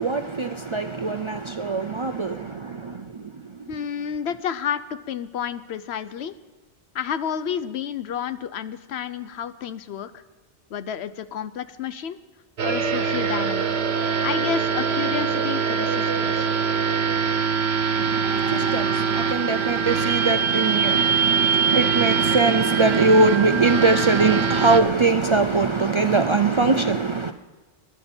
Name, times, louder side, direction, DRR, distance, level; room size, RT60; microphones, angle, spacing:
voice 1, 0.0-3.2 18.0-27.3, right 3 dB, 45° right, 0.4 m, -22 dB
voice 2, 3.7-6.3 6.9-10.2 10.7-12.2 12.6-13.7 14.2-16.5, left 8 dB, 80° left, 1.0 m, -30 dB
sound 1, 12.6-24.8, right 6 dB, 75° right, 1.2 m, -23 dB
21.0 x 11.5 x 4.4 m
omnidirectional pair, 1.1 m